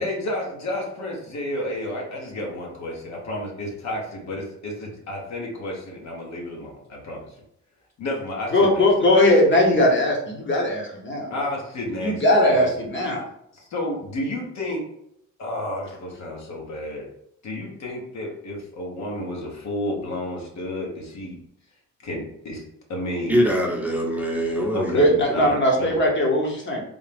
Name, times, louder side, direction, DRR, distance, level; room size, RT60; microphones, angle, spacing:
voice 1, 0.0-7.3 8.0-8.9 9.2-9.3 11.3-12.9 13.5-14.8 15.4-17.0 17.4-21.4 22.0-22.6 22.9-23.4 24.7-26.0, left 1 dB, 65° left, -1 dB, 1.2 m, -31 dB
voice 2, 8.5-11.3 12.0-13.2 24.9-26.8, left 1 dB, 40° left, 0 dB, 1.1 m, -19 dB
voice 3, 23.3-25.5, equal, 5° right, -2 dB, 0.8 m, -24 dB
3.7 x 2.3 x 3.4 m, 0.74 s
cardioid pair, 90°, 30 cm